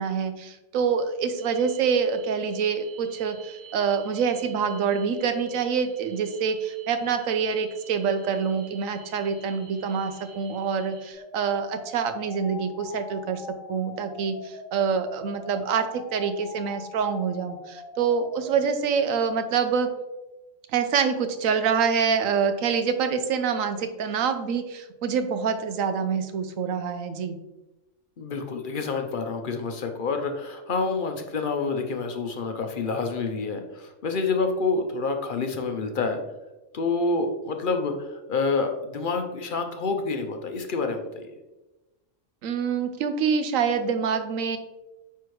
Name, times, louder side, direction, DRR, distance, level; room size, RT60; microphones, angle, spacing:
voice 1, 0.0-13.4 13.7-19.9 20.7-27.4 42.4-44.6, right 6 dB, 85° right, 9 dB, 1.1 m, -26 dB
sound 1, 1.4-11.1, right 7 dB, 65° right, 1.2 m, -50 dB
sound 2, 11.2-18.5, left 4 dB, 85° left, 1.1 m, -43 dB
voice 2, 28.2-36.2 36.7-41.3, left 4 dB, 55° left, 5 dB, 0.6 m, -28 dB
9.2 x 3.5 x 3.1 m, 1.1 s
omnidirectional pair, 1.3 m